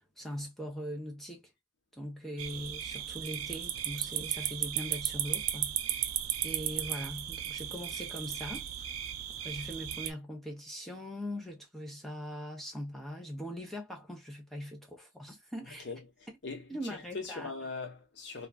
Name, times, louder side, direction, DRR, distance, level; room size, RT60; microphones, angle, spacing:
voice 1, 0.0-1.5 1.9-6.1 6.4-8.6 9.4-15.9 16.3-16.4 16.7-17.5, equal, ahead, 0.7 m, -41 dB
sound 1, 2.4-10.1, right 11 dB, 85° right, 0.4 m, -35 dB
voice 2, 16.4-18.5, left 4 dB, 55° left, 0.9 m, -40 dB
2.9 x 2.4 x 2.3 m
head